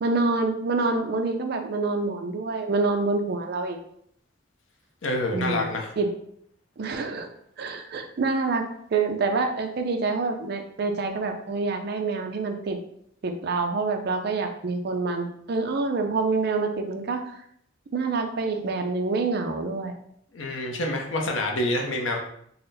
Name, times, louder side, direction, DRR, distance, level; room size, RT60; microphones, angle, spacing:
voice 1, 0.0-3.8 5.3-5.7 6.0-6.1 6.8-7.3 7.6-12.8 13.2-17.3 17.9-19.9, right 3 dB, 55° right, 5 dB, 0.4 m, -26 dB
voice 2, 5.0-5.9 20.3-22.3, left 1 dB, 75° left, 1 dB, 0.7 m, -27 dB
4.0 x 2.1 x 4.0 m, 0.70 s
head